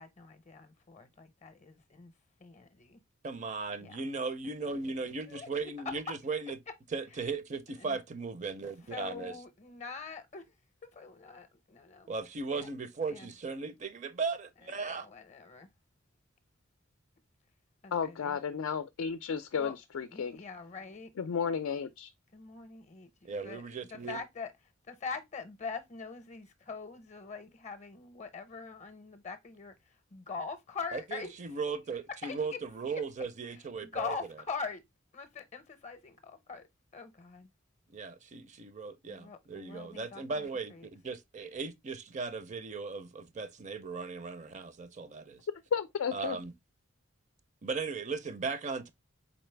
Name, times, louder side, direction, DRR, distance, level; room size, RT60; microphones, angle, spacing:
voice 1, 0.0-2.1 2.4-3.0 3.8-4.0 5.3-5.5 5.9-6.1 7.8-8.0 8.9-10.5 10.9-12.1 12.6-12.7 13.1-13.3 14.8-15.7 17.8-18.4 19.5-19.7 20.1-21.1 22.3-23.6 23.9-24.5 24.9-29.7 30.1-31.3 32.2-32.6 33.8-34.8 35.1-36.7 36.9-37.5 39.1-40.9, left 5 dB, 35° left, 0.6 m, -43 dB
voice 2, 3.2-6.6 6.9-9.4 12.1-15.1 23.2-24.2 30.9-34.2 37.9-45.4 46.1-46.5 47.6-48.9, right 4 dB, 35° right, 0.5 m, -37 dB
voice 3, 17.9-20.4 21.2-22.1 45.7-46.4, left 6 dB, 85° left, 0.4 m, -33 dB
4.1 x 3.8 x 3.2 m
head